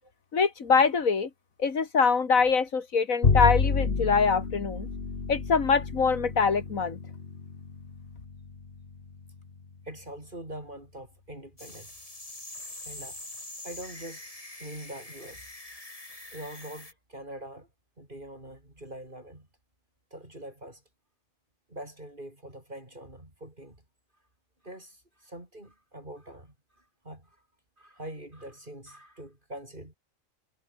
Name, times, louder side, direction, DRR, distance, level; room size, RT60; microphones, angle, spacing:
voice 1, 0.3-1.3 1.6-4.9 5.3-7.0, left 5 dB, 85° left, 2.4 m, -24 dB
Bowed string instrument, 3.2-9.7, left 4 dB, 45° left, 1.9 m, -30 dB
voice 2, 9.8-12.0 12.8-13.2 13.6-14.2 14.6-15.5 16.3-17.7 18.0-19.5 20.1-20.8 21.7-23.8 24.6-27.4 27.8-29.9, right 1 dB, 35° right, 5.8 m, -44 dB
sound 1, 11.6-16.9, left 2 dB, 25° left, 3.3 m, -44 dB
omnidirectional pair, 1.4 m